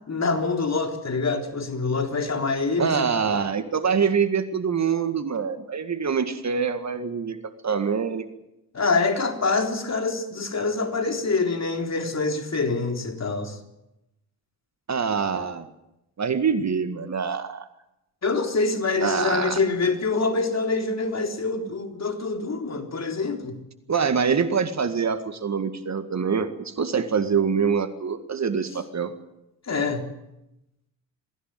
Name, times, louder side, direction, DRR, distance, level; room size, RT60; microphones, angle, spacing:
voice 1, 0.1-3.1 8.7-13.6 18.2-23.6 29.7-30.1, left 3 dB, 35° left, 5 dB, 3.7 m, -25 dB
voice 2, 2.8-8.3 14.9-15.7 16.2-17.7 19.0-19.6 23.9-29.1, right 6 dB, 35° right, 10 dB, 2.0 m, -25 dB
22.5 x 15.5 x 9.3 m, 0.89 s
hypercardioid pair, 50°, 45 cm